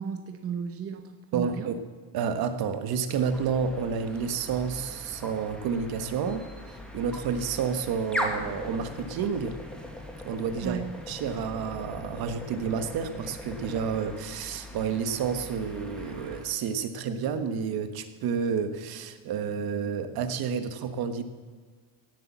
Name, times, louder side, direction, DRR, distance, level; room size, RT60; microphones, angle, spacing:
voice 1, 0.0-1.7 10.6-10.9, right 7 dB, 30° right, 6 dB, 1.0 m, -34 dB
voice 2, 1.3-1.7 2.1-6.4 6.9-9.5 10.2-10.8 11.1-21.2, right 6 dB, 50° right, 10 dB, 1.3 m, -30 dB
sound 1, 3.1-16.6, left 1 dB, ahead, 1.6 m, -40 dB
17.5 x 8.4 x 7.3 m, 1.5 s
cardioid pair, 165°, 48 cm